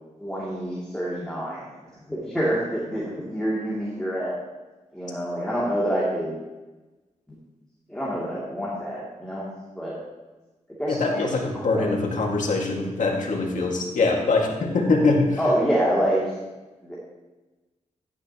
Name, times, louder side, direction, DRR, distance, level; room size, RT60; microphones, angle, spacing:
voice 1, 0.2-1.8 2.1-4.4 4.9-6.4 7.9-9.5 9.8-9.9 10.8-11.9 15.4-16.2 16.8-17.0, equal, 5° left, -7 dB, 2.6 m, -27 dB
voice 2, 10.9-15.4, left 3 dB, 75° left, 0 dB, 1.9 m, -23 dB
11.0 x 9.6 x 2.9 m, 1.2 s
cardioid pair, 75°, 13 cm